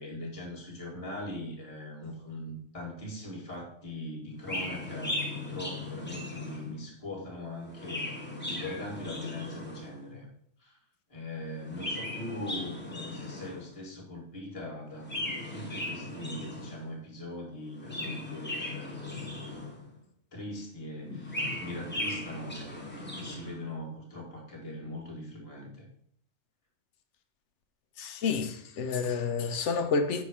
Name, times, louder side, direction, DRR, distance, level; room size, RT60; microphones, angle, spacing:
voice 1, 0.0-10.3 10.6-10.8 11.1-15.1 15.5-19.2 20.3-25.9, left 1 dB, 25° left, 1.5 m, -41 dB
Chirp tweet, 4.4-6.9 7.6-10.0 11.5-13.7 15.0-16.9 17.7-20.0 21.0-23.6, left 1 dB, 10° left, 1.0 m, -37 dB
voice 2, 28.0-30.2, left 5 dB, 65° left, 1.0 m, -29 dB
5.6 x 3.7 x 4.8 m
omnidirectional pair, 1.3 m